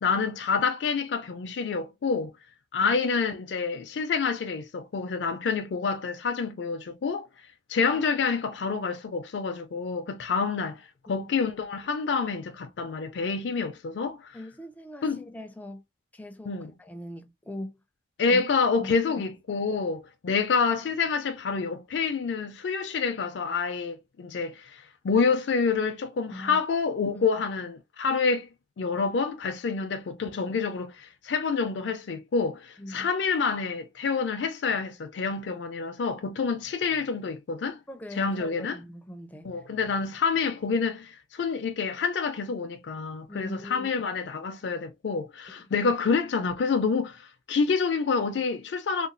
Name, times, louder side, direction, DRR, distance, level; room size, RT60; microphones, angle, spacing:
voice 1, 0.0-2.3 2.7-7.3 7.7-14.4 15.0-15.2 16.5-16.7 18.2-28.5 28.8-37.8 38.1-38.8 39.4-49.1, left 5 dB, 70° left, 0.4 m, -28 dB
voice 2, 14.3-15.8 16.1-17.8 18.3-18.4 18.8-19.3 26.3-26.6 32.8-33.1 37.9-39.5 43.3-43.9 44.6-44.7, left 1 dB, 10° left, 0.4 m, -41 dB
2.9 x 2.3 x 2.5 m
head